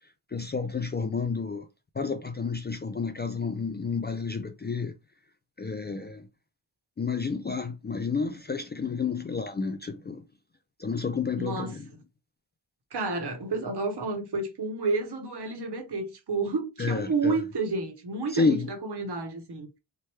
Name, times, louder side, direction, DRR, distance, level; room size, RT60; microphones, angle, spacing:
voice 1, 0.3-1.7 2.0-4.9 5.6-6.3 7.0-10.2 10.8-11.9 16.8-17.3 18.3-18.7, left 4 dB, 25° left, 0.3 m, -30 dB
voice 2, 11.4-12.0 12.9-19.7, right 3 dB, 60° right, 1.0 m, -30 dB
3.0 x 2.1 x 3.1 m
cardioid pair, 55°, 46 cm